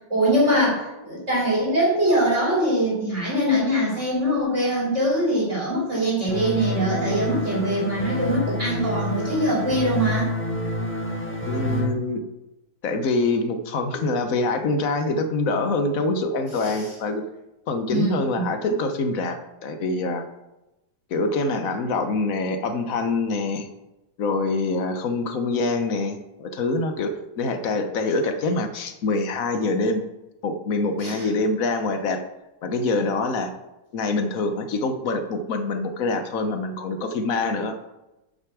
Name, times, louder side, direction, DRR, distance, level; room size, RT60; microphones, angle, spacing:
voice 1, 0.1-10.3 16.6-16.9 17.9-18.5 31.0-31.3, equal, 30° right, -6 dB, 3.4 m, -23 dB
sound 1, 6.3-11.9, left 1 dB, 10° left, 0.9 m, -28 dB
voice 2, 11.5-12.2 12.8-17.2 17.7-20.2 21.1-23.7 24.2-30.0 30.4-32.2 32.6-33.5 33.9-37.8, left 3 dB, 55° left, 7 dB, 1.0 m, -25 dB
6.9 x 6.5 x 6.2 m, 0.98 s
omnidirectional pair, 2.4 m